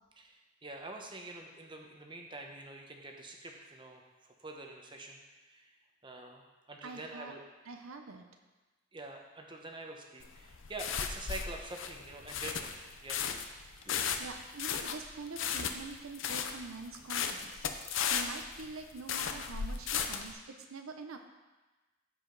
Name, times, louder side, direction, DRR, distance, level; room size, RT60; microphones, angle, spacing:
voice 1, 0.2-5.7 6.0-6.4 6.7-7.4 8.9-12.7 13.0-13.2 13.8-14.2, right 2 dB, 20° right, 2 dB, 0.9 m, -46 dB
voice 2, 6.8-7.3 7.6-8.4 14.2-21.2, right 3 dB, 75° right, 5 dB, 0.6 m, -45 dB
sound 1, 10.2-20.3, left 7 dB, 60° left, 0.6 m, -35 dB
14.5 x 4.9 x 3.9 m, 1.2 s
head